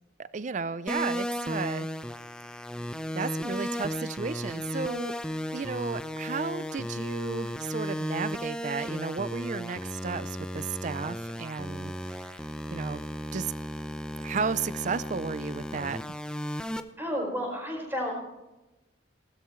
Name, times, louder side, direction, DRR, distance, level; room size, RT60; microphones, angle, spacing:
voice 1, 0.2-1.9 3.1-5.1 5.5-12.4 12.7-13.0 13.3-13.5 14.2-16.0, right 5 dB, 40° right, 16 dB, 0.4 m, -33 dB
sound 1, 0.9-16.8, equal, 5° left, 0.5 m, -35 dB
voice 2, 17.0-18.1, equal, 15° right, -1 dB, 4.9 m, -31 dB
18.5 x 13.0 x 3.1 m, 1.0 s
head